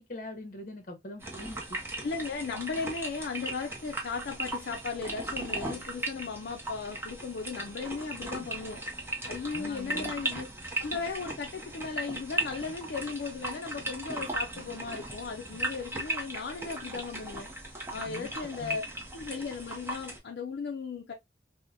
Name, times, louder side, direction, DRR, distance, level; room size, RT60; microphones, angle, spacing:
voice 1, 0.0-1.8 9.5-10.1 18.0-18.3 18.6-18.8, left 1 dB, 45° left, 0.8 m, -42 dB
sound 1, 1.2-20.2, right 1 dB, 10° right, 0.6 m, -37 dB
voice 2, 2.0-8.8 9.3-10.5 10.8-17.5 17.9-18.8 19.1-21.1, left 5 dB, 60° left, 0.4 m, -36 dB
3.6 x 2.1 x 2.5 m
head